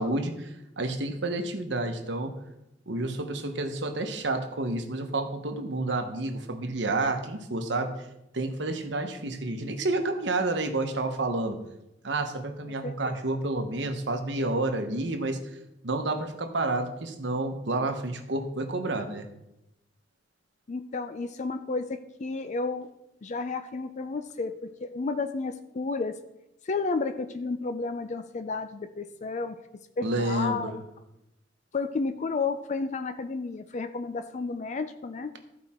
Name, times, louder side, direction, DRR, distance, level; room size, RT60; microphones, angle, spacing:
voice 1, 0.0-2.3 2.9-8.1 8.3-11.6 12.0-15.4 15.8-19.3 30.0-30.7, right 2 dB, 70° right, 6 dB, 1.1 m, -30 dB
voice 2, 12.8-13.2 20.7-22.9 23.2-26.1 26.7-29.6 30.0-30.8 31.7-35.3, left 4 dB, 40° left, 9 dB, 0.4 m, -32 dB
14.0 x 4.8 x 4.3 m, 0.88 s
head